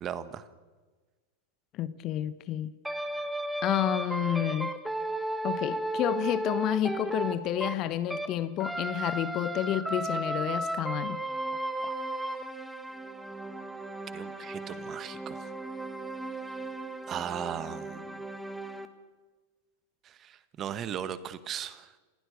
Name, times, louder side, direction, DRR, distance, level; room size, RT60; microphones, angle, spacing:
voice 1, 0.0-0.5 11.8-11.9 14.1-15.5 17.1-18.2 20.0-21.9, right 9 dB, 30° right, 14 dB, 1.4 m, -37 dB
voice 2, 1.7-2.7 3.6-4.7 5.4-11.2, left 11 dB, 35° left, 15 dB, 1.0 m, -30 dB
sound 1, 2.8-8.3 8.6-18.9, right 1 dB, 5° right, 1.7 m, -35 dB
29.0 x 16.0 x 6.8 m, 1.3 s
figure-of-eight pair, 90°, 0 cm